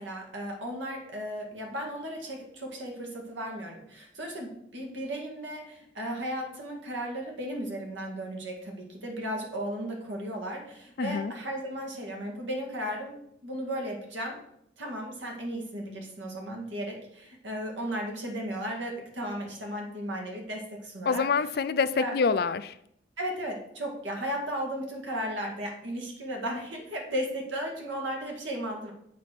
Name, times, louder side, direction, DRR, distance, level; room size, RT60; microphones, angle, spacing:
voice 1, 0.0-13.2 13.4-14.4 14.8-21.2 22.0-22.1 23.2-28.9, equal, 90° right, 1 dB, 2.0 m, -35 dB
voice 2, 11.0-11.3 21.0-22.8, left 5 dB, 55° left, 14 dB, 0.4 m, -26 dB
7.4 x 4.2 x 6.0 m, 0.73 s
head